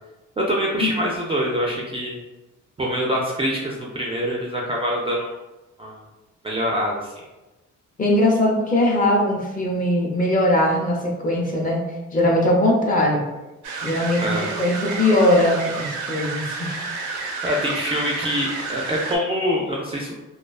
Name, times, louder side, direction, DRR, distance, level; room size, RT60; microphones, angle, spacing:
voice 1, 0.4-2.2 2.8-5.3 5.8-6.0 6.4-7.2 14.2-14.5 17.4-20.1, equal, 20° right, -2 dB, 0.3 m, -25 dB
voice 2, 8.0-11.8 12.1-13.2 13.8-14.2 14.6-16.7, left 1 dB, 30° left, -2 dB, 0.6 m, -20 dB
sound 1, 13.6-19.2, right 4 dB, 85° right, 0.5 m, -30 dB
2.4 x 2.3 x 2.3 m, 1.1 s
cardioid pair, 90°, 30 cm